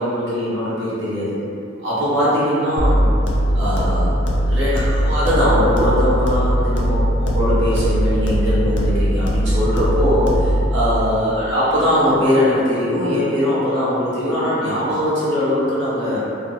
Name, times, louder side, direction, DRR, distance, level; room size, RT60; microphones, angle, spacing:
voice 1, 0.0-1.4 1.8-3.1 3.5-4.1 4.5-16.2, equal, 80° right, -10 dB, 0.8 m, -20 dB
sound 1, 2.8-10.8, equal, 65° left, 0.4 m, -19 dB
2.4 x 2.1 x 2.7 m, 2.7 s
head